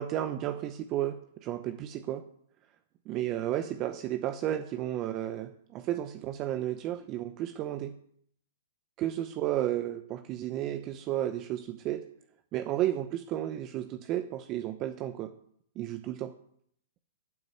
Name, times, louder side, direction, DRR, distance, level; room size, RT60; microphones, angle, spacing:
voice 1, 0.0-2.2 3.1-7.9 9.0-12.0 12.5-15.3 15.8-16.3, right 12 dB, 35° right, 9 dB, 0.8 m, -33 dB
12.0 x 6.5 x 7.8 m, 0.66 s
hypercardioid pair, 130°, 0 cm